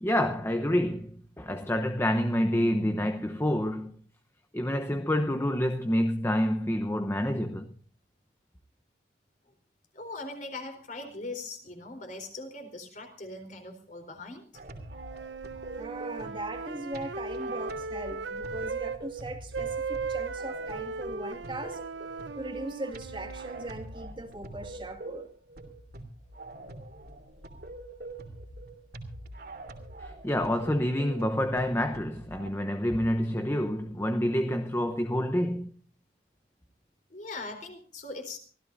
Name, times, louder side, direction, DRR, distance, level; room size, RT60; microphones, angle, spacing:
voice 1, 0.0-3.9 4.5-7.7 30.0-35.7, equal, 15° left, 0.9 m, -28 dB
voice 2, 9.9-14.4 37.1-38.4, left 2 dB, 45° left, 4.1 m, -40 dB
sound 1, 14.5-32.5, right 2 dB, 55° right, 3.0 m, -44 dB
sound 2, 14.9-19.0 19.5-23.7, right 4 dB, 80° right, 1.0 m, -37 dB
voice 3, 15.8-21.8 22.4-25.3, right 1 dB, 25° right, 2.2 m, -39 dB
25.0 x 16.0 x 2.7 m
head